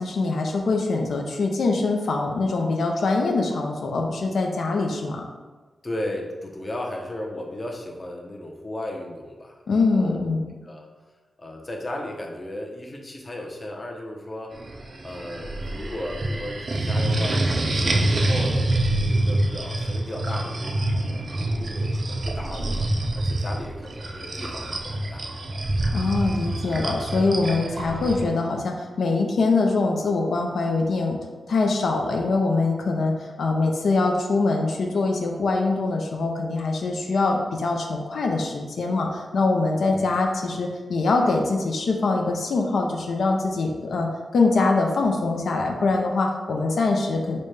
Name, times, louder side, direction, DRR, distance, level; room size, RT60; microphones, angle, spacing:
voice 1, 0.0-5.3 9.7-10.5 25.9-31.2 31.5-47.4, left 3 dB, 80° left, 1 dB, 0.4 m, -23 dB
voice 2, 5.8-10.2 10.6-10.9 11.4-14.5 15.0-20.8 21.4-25.3 39.9-40.0, left 1 dB, 25° left, 0 dB, 0.6 m, -35 dB
sound 1, 14.5-28.3, right 1 dB, 50° right, 0.4 m, -26 dB
5.1 x 2.2 x 3.1 m, 1.3 s
wide cardioid pair, 100°, 0 cm